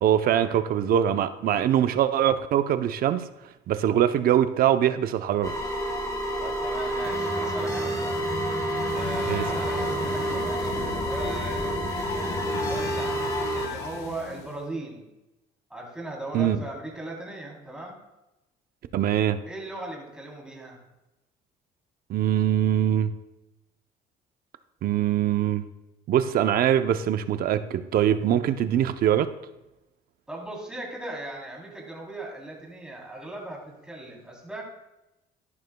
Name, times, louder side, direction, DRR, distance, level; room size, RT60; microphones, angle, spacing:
voice 1, 0.0-3.3 3.7-5.5 9.3-9.4 16.3-16.6 18.9-19.4 22.1-23.1 24.8-25.7 26.1-29.3, right 10 dB, 60° right, 10 dB, 0.7 m, -23 dB
sound 1, 5.4-13.7, right 1 dB, 20° left, 2.0 m, -28 dB
voice 2, 6.4-8.2 8.9-11.8 12.7-13.2 13.5-15.1 15.7-17.9 19.4-20.8 30.3-34.6, right 1 dB, 5° right, -2 dB, 3.4 m, -38 dB
sound 2, 8.9-14.6, left 6 dB, 85° left, 1.1 m, -37 dB
13.5 x 11.0 x 2.3 m, 0.98 s
cardioid pair, 110°, 17 cm